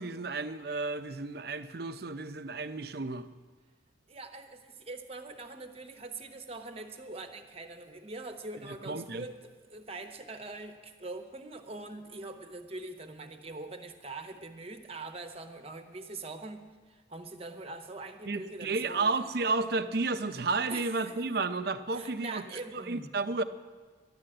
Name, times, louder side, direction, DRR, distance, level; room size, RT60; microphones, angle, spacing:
voice 1, 0.0-3.3 8.9-9.3 18.3-22.4 22.7-23.4, right 3 dB, 55° right, 11 dB, 0.6 m, -32 dB
voice 2, 4.1-16.6 16.9-19.1 20.7-21.1 21.9-23.1, right 3 dB, 30° right, 7 dB, 0.9 m, -43 dB
11.5 x 11.5 x 7.7 m, 1.5 s
head